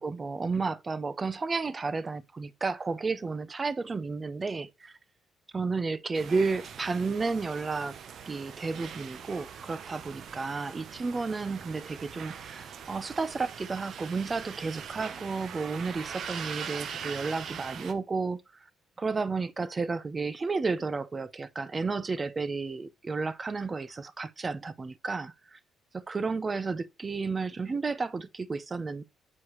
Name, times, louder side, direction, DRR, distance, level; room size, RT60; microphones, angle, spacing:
voice 1, 0.0-4.9 5.5-7.9 8.3-18.4 19.0-25.6 25.9-29.0, right 4 dB, 30° right, 0.6 m, -32 dB
sound 1, 6.1-17.9, right 7 dB, 65° right, 0.8 m, -42 dB
7.6 x 4.8 x 3.1 m
cardioid pair, 90°, 0 cm